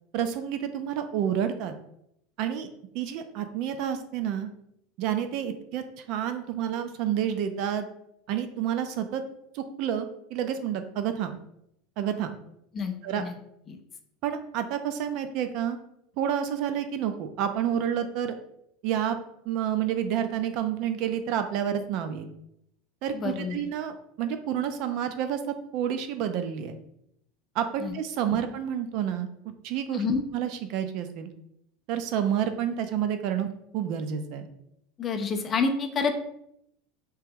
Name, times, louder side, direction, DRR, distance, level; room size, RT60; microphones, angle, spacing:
voice 1, 0.1-1.7 2.4-2.7 2.9-4.5 5.0-7.9 8.3-9.2 9.5-11.4 12.0-12.4 13.0-13.2 14.2-15.8 16.2-18.4 18.8-19.2 19.5-22.3 23.0-25.4 25.7-26.8 27.5-29.3 29.6-30.0 30.3-31.3 31.9-33.5 33.7-34.5, right 9 dB, 45° right, 8 dB, 0.3 m, -29 dB
voice 2, 12.7-13.3 13.7-13.8 23.1-23.6 27.8-27.9 28.3-28.4 29.9-30.2 35.0-36.2, left 4 dB, 20° left, 5 dB, 0.4 m, -28 dB
3.3 x 2.9 x 3.6 m, 0.75 s
supercardioid pair, 170°, 0 cm